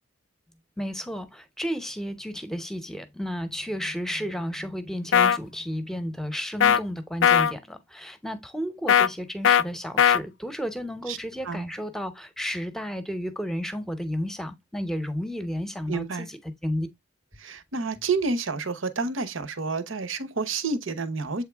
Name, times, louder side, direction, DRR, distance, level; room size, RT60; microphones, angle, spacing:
voice 1, 0.8-16.9, equal, ahead, 0.8 m, -32 dB
sound 1, 5.1-5.4 6.6-6.8 7.2-7.5 8.9-9.1 9.4-9.6 10.0-10.2, left 9 dB, 70° left, 0.4 m, -18 dB
voice 2, 15.9-16.3 17.4-21.4, right 4 dB, 75° right, 1.0 m, -29 dB
7.9 x 3.6 x 3.5 m
head